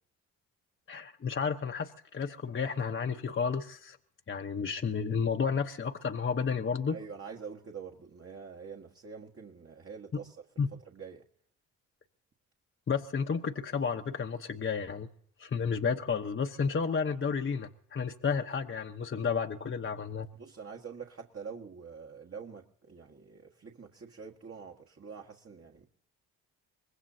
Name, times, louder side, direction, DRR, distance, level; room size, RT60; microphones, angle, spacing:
voice 1, 0.9-4.0 4.3-7.0 10.1-10.2 10.6-10.7 12.9-15.1 15.4-20.3, left 6 dB, 35° left, 1.1 m, -32 dB
voice 2, 6.9-10.4 10.9-11.2 20.4-25.9, right 6 dB, 40° right, 1.7 m, -46 dB
24.5 x 20.0 x 2.8 m
supercardioid pair, 55°, 35 cm